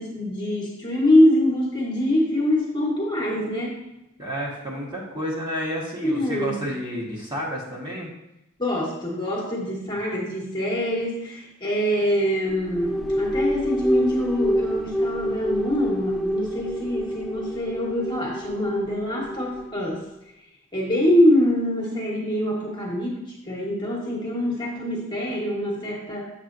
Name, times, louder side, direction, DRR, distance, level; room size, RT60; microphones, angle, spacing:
voice 1, 0.0-3.8 6.0-6.6 8.6-20.0 20.7-26.2, left 1 dB, 20° left, -3 dB, 1.3 m, -24 dB
voice 2, 4.2-8.1, equal, 20° right, -4 dB, 1.3 m, -30 dB
sound 1, 12.5-20.1, equal, ahead, 0.4 m, -27 dB
7.3 x 6.6 x 2.6 m, 0.88 s
head